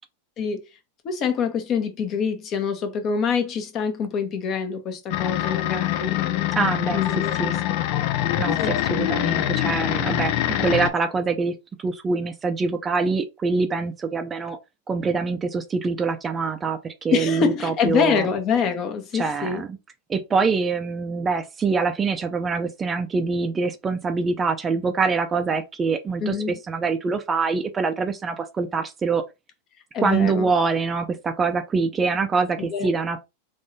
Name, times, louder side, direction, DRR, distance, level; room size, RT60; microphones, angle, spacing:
voice 1, 1.0-7.8 8.6-8.7 17.1-19.6 26.2-26.5 29.9-30.5 32.6-32.9, left 6 dB, 40° left, 1.0 m, -26 dB
sound 1, 5.1-10.9, left 13 dB, 55° left, 0.4 m, -24 dB
voice 2, 6.5-7.0 7.3-7.6 8.4-14.6 14.9-18.3 19.1-19.8 20.1-29.2 30.0-33.2, right 4 dB, 20° right, 0.5 m, -24 dB
3.6 x 3.0 x 2.7 m
hypercardioid pair, 115°, 0 cm